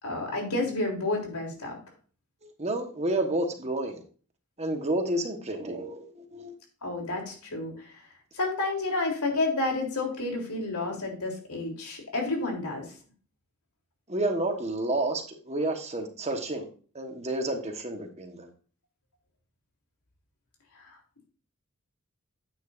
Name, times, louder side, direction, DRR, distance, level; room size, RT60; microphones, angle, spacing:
voice 1, 0.0-1.8 6.8-8.0 8.3-12.9 20.7-21.0, left 2 dB, 85° left, 1 dB, 3.5 m, -30 dB
voice 2, 2.4-4.0 4.6-6.5 14.1-16.7 16.9-18.5, right 1 dB, 30° right, 5 dB, 1.3 m, -30 dB
9.6 x 9.4 x 2.6 m, 0.40 s
head